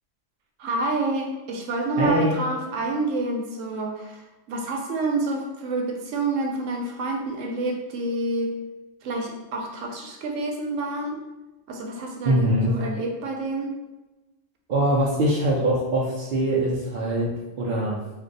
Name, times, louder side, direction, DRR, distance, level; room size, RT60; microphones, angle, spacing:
voice 1, 0.6-8.5 9.0-11.2 11.7-13.7, right 2 dB, 85° right, 2 dB, 1.0 m, -28 dB
voice 2, 2.0-2.4 12.2-12.7 14.7-18.0, right 1 dB, 55° right, -5 dB, 0.5 m, -23 dB
2.5 x 2.2 x 3.8 m, 1.1 s
omnidirectional pair, 1.3 m